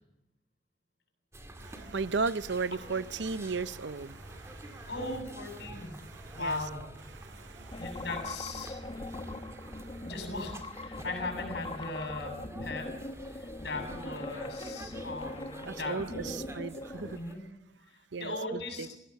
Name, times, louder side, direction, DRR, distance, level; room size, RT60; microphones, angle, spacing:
sound 1, 1.3-17.4, right 1 dB, 15° right, 2.3 m, -48 dB
voice 1, 1.6-4.9 5.7-6.6 7.1-8.0 8.6-10.1 10.9-11.0 15.6-17.2 18.1-19.0, right 4 dB, 70° right, 0.7 m, -37 dB
voice 2, 4.9-6.0 6.3-6.8 7.8-8.8 10.0-12.9 13.6-16.6 17.1-17.4 18.2-18.9, left 2 dB, 65° left, 7.2 m, -38 dB
sound 2, 7.7-17.2, left 2 dB, 30° left, 1.0 m, -41 dB
20.5 x 17.0 x 8.3 m
head